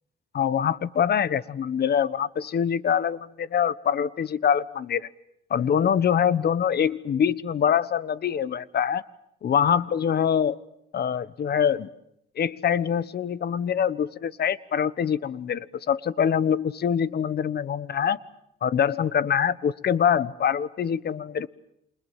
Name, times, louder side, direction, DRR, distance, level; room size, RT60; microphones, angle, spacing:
voice 1, 0.3-5.1 5.5-9.0 9.4-10.6 10.9-11.9 12.4-18.2 18.6-21.5, left 8 dB, 55° left, 1.2 m, -24 dB
29.0 x 27.5 x 7.4 m
cardioid pair, 90°, 20 cm